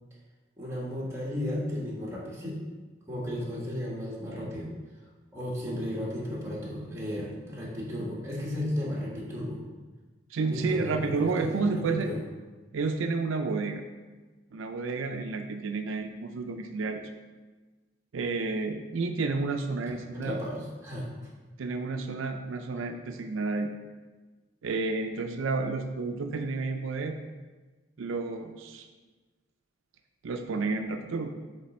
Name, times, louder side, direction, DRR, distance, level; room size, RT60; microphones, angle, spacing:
voice 1, 0.6-2.6 3.1-4.7 5.3-9.6 10.4-12.2 20.1-21.1, left 1 dB, 15° right, -5 dB, 1.4 m, -34 dB
voice 2, 10.3-12.1 12.7-13.9 14.5-17.0 18.1-20.4 21.6-23.7 24.6-27.2 28.0-28.9 30.2-31.3, right 3 dB, 85° right, 5 dB, 0.4 m, -30 dB
7.5 x 3.2 x 4.2 m, 1.3 s
head